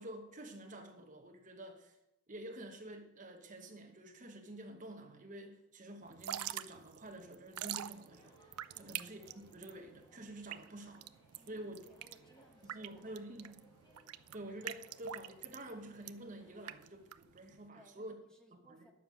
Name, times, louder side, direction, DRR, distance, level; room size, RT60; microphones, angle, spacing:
voice 1, 0.0-2.0 2.3-8.5 8.8-11.1 11.5-11.9 12.6-13.6 14.3-18.2 18.5-18.9, right 1 dB, 35° right, 5 dB, 1.0 m, -49 dB
Drip / Trickle dribble, 6.1-17.7, right 12 dB, 85° right, 0.4 m, -45 dB
sound 1, 7.5-16.8, equal, 20° left, 1.7 m, -66 dB
voice 2, 8.7-9.1 11.3-13.5 17.7-18.9, equal, 5° left, 2 dB, 1.0 m, -65 dB
10.0 x 7.3 x 6.0 m, 0.90 s
head